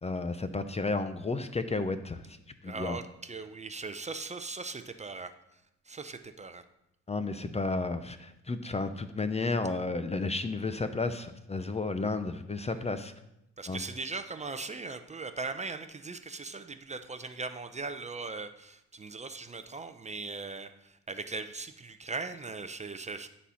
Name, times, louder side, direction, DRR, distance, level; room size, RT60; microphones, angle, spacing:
voice 1, 0.0-2.4 2.6-3.0 7.1-13.1 13.7-13.8, left 3 dB, 20° left, 10 dB, 0.6 m, -32 dB
voice 2, 2.6-5.3 5.9-6.6 12.7-12.8 13.6-23.3, right 3 dB, 25° right, 9 dB, 0.6 m, -39 dB
11.0 x 4.3 x 5.7 m, 0.85 s
cardioid pair, 90°, 30 cm